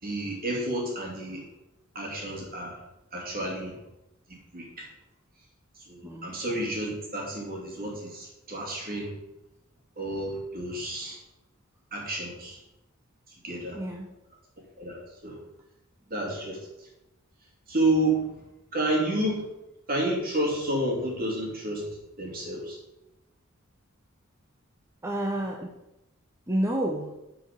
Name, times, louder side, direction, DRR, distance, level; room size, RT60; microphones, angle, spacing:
voice 1, 0.0-1.5 1.9-2.8 3.1-3.8 4.5-4.9 5.9-9.1 10.0-11.2 11.9-12.6 13.4-13.8 14.8-15.4 16.1-16.6 17.7-18.4 18.7-19.5 19.9-21.9 22.2-22.8, right 1 dB, 45° right, -1 dB, 2.6 m, -30 dB
voice 2, 6.0-6.3 13.7-14.1 25.0-25.7 26.5-27.1, right 1 dB, 15° right, 1 dB, 0.7 m, -29 dB
10.0 x 4.7 x 5.2 m, 0.91 s
head